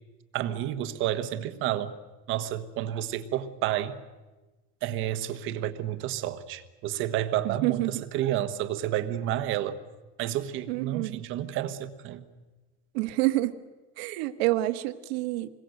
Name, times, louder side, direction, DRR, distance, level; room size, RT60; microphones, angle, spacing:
voice 1, 0.3-1.9 2.3-4.0 4.8-9.8 10.2-12.2, right 12 dB, 35° right, 1.2 m, -30 dB
voice 2, 7.4-8.0 10.7-11.2 12.9-13.6 14.0-15.5, right 17 dB, 55° right, 1.5 m, -28 dB
27.0 x 22.0 x 7.8 m
cardioid pair, 180°, 37 cm